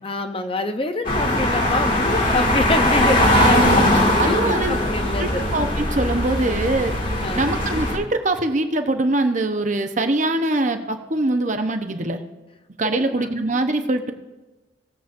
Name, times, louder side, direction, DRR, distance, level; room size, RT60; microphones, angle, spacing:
voice 1, 0.0-5.5 7.2-7.5 12.8-13.3, left 2 dB, 30° left, 7 dB, 0.6 m, -26 dB
sound 1, 1.0-8.0, left 1 dB, 45° left, 2.0 m, -20 dB
voice 2, 3.3-3.9 4.2-4.8 5.2-6.9 7.3-12.2 12.8-14.1, right 2 dB, 40° right, 6 dB, 0.8 m, -23 dB
19.0 x 7.6 x 2.6 m, 1.2 s
head